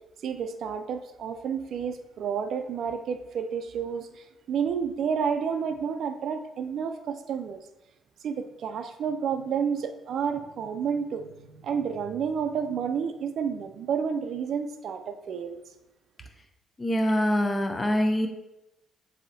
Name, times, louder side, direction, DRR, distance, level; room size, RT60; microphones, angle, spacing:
voice 1, 0.2-7.6 8.2-15.6, right 7 dB, 65° right, 8 dB, 0.3 m, -30 dB
voice 2, 16.8-18.3, equal, 20° left, 4 dB, 0.5 m, -24 dB
7.3 x 2.7 x 2.7 m, 0.93 s
cardioid pair, 90°, 0 cm